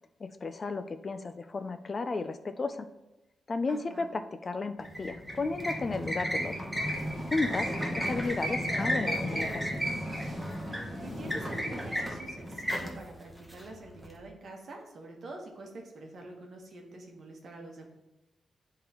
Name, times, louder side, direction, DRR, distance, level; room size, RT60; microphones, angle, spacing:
voice 1, 0.2-2.9 3.5-6.7 7.2-9.8, left 3 dB, 30° left, 10 dB, 0.3 m, -34 dB
voice 2, 3.7-4.1 8.3-8.5 11.0-17.8, right 2 dB, 50° right, 1 dB, 1.2 m, -46 dB
sound 1, 4.8-14.1, equal, ahead, 0.9 m, -34 dB
sound 2, 6.7-12.1, equal, 20° right, 1.7 m, -43 dB
10.0 x 3.7 x 2.9 m, 0.98 s
wide cardioid pair, 140°, 0 cm